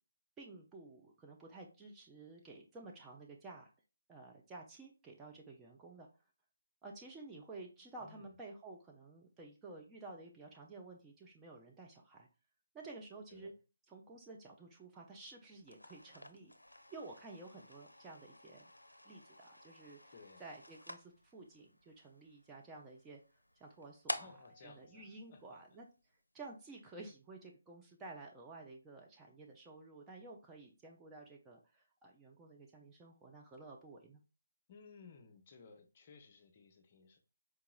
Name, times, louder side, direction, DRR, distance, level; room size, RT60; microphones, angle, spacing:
voice 1, 0.4-3.7 4.1-6.1 6.8-12.3 12.7-13.5 13.9-16.5 16.9-18.7 19.0-20.1 20.4-23.2 23.6-24.3 24.6-25.9 26.3-34.2, right 3 dB, 10° right, -1 dB, 0.5 m, -52 dB
voice 2, 8.0-8.4 13.3-13.5 20.1-20.5 24.1-25.6 34.7-37.2, left 5 dB, 35° left, 4 dB, 0.6 m, -59 dB
sound 1, 15.6-26.0, left 1 dB, 85° left, 0.5 m, -50 dB
4.6 x 2.8 x 2.3 m, 0.32 s
figure-of-eight pair, 145°, 0 cm